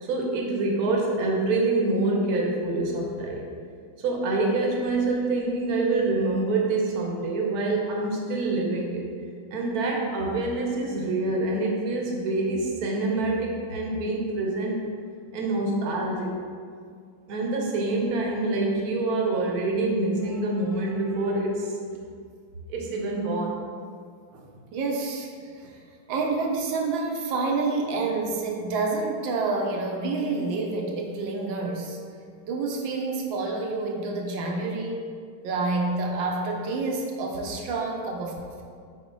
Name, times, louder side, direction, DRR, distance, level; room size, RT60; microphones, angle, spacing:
voice 1, 0.0-3.4 4.0-9.1 9.5-14.8 15.3-16.3 17.3-21.7 22.7-23.6, right 2 dB, 55° right, -1 dB, 1.3 m, -26 dB
voice 2, 24.3-25.8 26.1-32.0 32.5-35.0 35.4-38.6, right 3 dB, 70° right, 1 dB, 1.5 m, -28 dB
7.2 x 4.8 x 3.8 m, 2.2 s
omnidirectional pair, 2.3 m